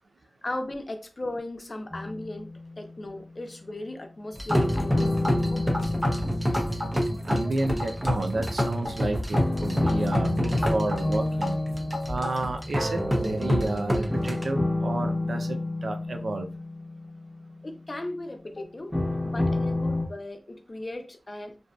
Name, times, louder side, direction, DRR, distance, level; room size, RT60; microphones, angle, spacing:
voice 1, 0.4-5.9 17.6-21.6, left 1 dB, 45° left, 0.5 m, -37 dB
sound 1, 1.9-3.1 4.5-8.5 9.3-18.1 18.9-20.1, left 2 dB, 10° left, 0.9 m, -30 dB
sound 2, 4.3-14.4, equal, 20° right, 0.6 m, -28 dB
voice 2, 7.2-11.6 12.1-16.5, right 2 dB, 85° right, 0.4 m, -31 dB
2.6 x 2.2 x 2.3 m
wide cardioid pair, 50°, 0 cm